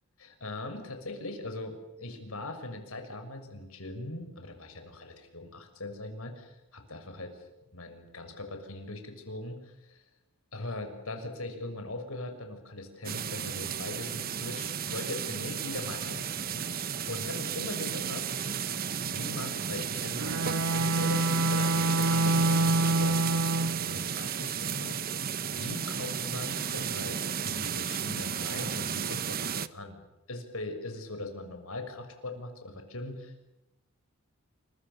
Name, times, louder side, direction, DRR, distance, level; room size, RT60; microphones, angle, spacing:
voice 1, 0.2-7.5 7.7-10.0 10.5-16.7 17.1-18.2 19.0-21.2 21.5-25.0 25.5-30.0 30.3-33.5, left 2 dB, 65° left, 6 dB, 6.5 m, -40 dB
sound 1, 13.0-29.7, right 7 dB, 40° right, 1.0 m, -33 dB
Bowed string instrument, 20.2-24.0, right 2 dB, 80° right, 2.7 m, -27 dB
30.0 x 26.5 x 7.0 m, 0.92 s
head